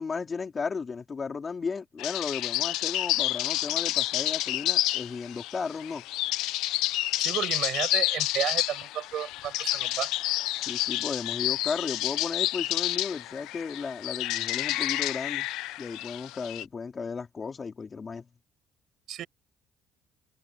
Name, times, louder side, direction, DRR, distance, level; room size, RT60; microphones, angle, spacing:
voice 1, 0.0-6.0 10.6-15.5 15.8-18.3, left 5 dB, 30° left, 4.3 m, -35 dB
sound 1, 2.0-16.6, left 16 dB, 85° left, 0.9 m, -29 dB
voice 2, 7.2-10.1 19.1-19.3, right 11 dB, 60° right, 7.8 m, -32 dB
cardioid pair, 110°, 0 cm